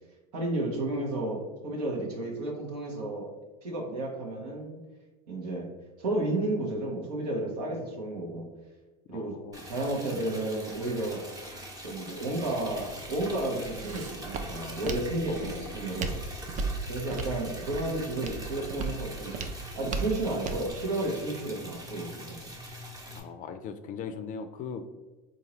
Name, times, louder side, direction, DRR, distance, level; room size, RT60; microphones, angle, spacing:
voice 1, 0.3-3.3 3.6-4.8 5.3-5.7 6.0-8.5 9.1-9.4 9.6-11.2 11.8-16.1 16.9-19.4 19.7-22.5, right 2 dB, 80° right, -1 dB, 1.1 m, -32 dB
voice 2, 9.1-9.7 15.3-15.8 23.1-24.8, left 6 dB, 40° left, 9 dB, 0.4 m, -40 dB
Liquid, 9.5-23.2, right 1 dB, 20° right, 0.9 m, -43 dB
Walk footsteps, 12.7-20.7, right 4 dB, 40° right, 0.5 m, -37 dB
3.7 x 2.7 x 3.0 m, 1.2 s
hypercardioid pair, 90°, 20 cm